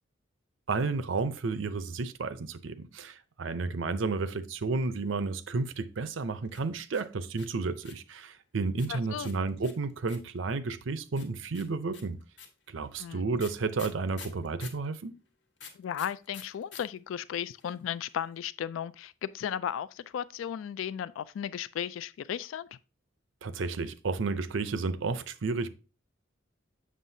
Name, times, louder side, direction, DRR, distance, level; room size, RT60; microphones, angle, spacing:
voice 1, 0.7-12.2 12.7-15.1 23.4-25.7, right 4 dB, 75° right, 0.6 m, -32 dB
sound 1, 6.5-8.1 8.8-10.4 11.2-14.9 15.6-16.8 17.1-17.2 17.4-17.8, left 6 dB, 65° left, 1.3 m, -47 dB
voice 2, 8.9-9.3 13.0-13.2 15.8-22.8, left 9 dB, 85° left, 0.3 m, -35 dB
7.5 x 6.3 x 2.7 m
head